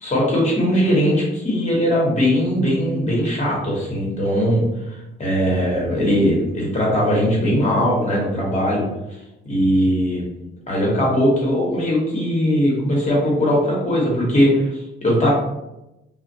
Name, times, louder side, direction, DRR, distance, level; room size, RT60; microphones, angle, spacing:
voice 1, 0.0-8.8 9.4-10.2 10.7-15.3, equal, 35° left, -3 dB, 1.1 m, -20 dB
2.4 x 2.1 x 2.6 m, 0.92 s
cardioid pair, 90°, 20 cm